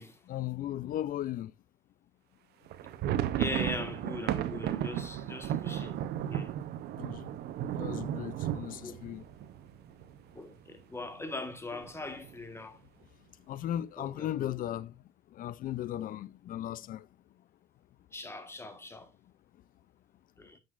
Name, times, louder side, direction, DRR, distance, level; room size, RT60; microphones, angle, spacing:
voice 1, 0.3-1.5 6.9-7.3 7.7-9.3 13.5-14.9 15.3-17.1, left 12 dB, 55° left, 0.4 m, -36 dB
sound 1, 2.7-10.4 10.7-10.8 11.1-11.3 11.8-12.3, right 11 dB, 75° right, 0.7 m, -34 dB
voice 2, 3.4-6.5 8.8-8.9 10.3-12.8 14.0-14.5 18.1-19.1 20.4-20.6, left 2 dB, 15° left, 1.5 m, -41 dB
9.4 x 6.4 x 2.4 m
cardioid pair, 110°, 17 cm